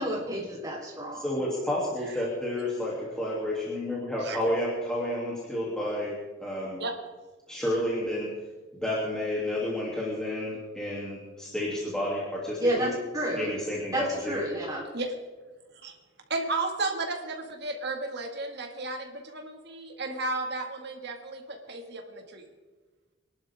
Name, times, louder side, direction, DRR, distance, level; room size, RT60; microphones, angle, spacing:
voice 1, 0.0-1.3 12.6-13.5 13.9-14.8, right 1 dB, 20° right, -4 dB, 3.9 m, -30 dB
voice 2, 1.1-6.8 7.5-8.3 8.8-12.9 13.3-14.4, left 1 dB, 5° left, -7 dB, 2.9 m, -30 dB
voice 3, 16.3-22.4, right 2 dB, 55° right, 3 dB, 2.1 m, -33 dB
24.0 x 11.5 x 3.7 m, 1.3 s
head